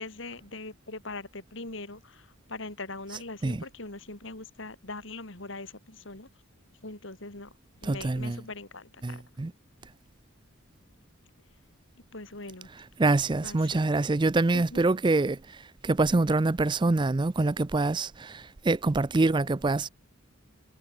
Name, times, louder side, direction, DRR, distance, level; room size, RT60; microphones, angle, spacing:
voice 1, 0.0-6.3 6.8-7.5 7.8-9.2 12.1-12.7 13.4-13.9 14.5-14.8, left 2 dB, 60° left, 3.0 m, -41 dB
voice 2, 7.8-8.4 9.0-9.5 13.0-15.4 15.8-19.9, right 3 dB, 20° right, 0.4 m, -25 dB
head